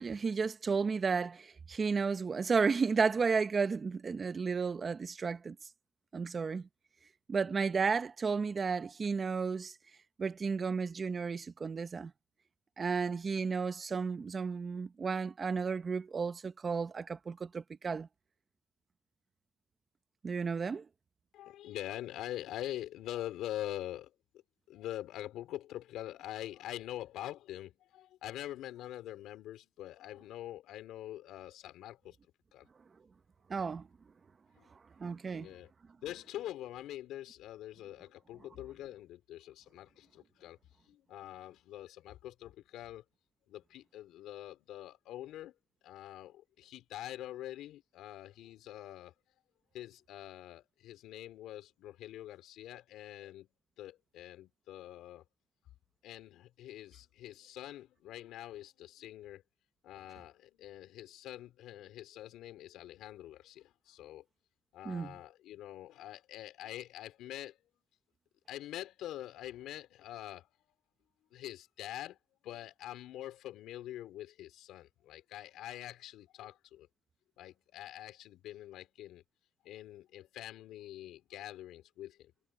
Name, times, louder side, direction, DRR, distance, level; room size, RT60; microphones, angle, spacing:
voice 1, 0.0-5.6 6.1-6.7 7.3-9.7 10.2-12.1 12.8-18.1 20.2-20.9 33.5-33.9 35.0-35.5 64.8-65.2, right 5 dB, 40° right, 1.1 m, -33 dB
voice 2, 21.3-24.1 24.7-32.2 32.5-32.7 34.6-34.7 35.3-35.7 36.0-40.6 40.8-43.0 43.5-45.5 45.8-49.1 49.7-53.5 53.8-55.2 56.0-59.4 59.8-64.2 64.7-67.6 68.5-70.5 71.3-72.2 72.4-76.9 77.4-79.2 79.6-82.3, left 13 dB, 90° left, 4.6 m, -45 dB
cardioid pair, 90°, 0 cm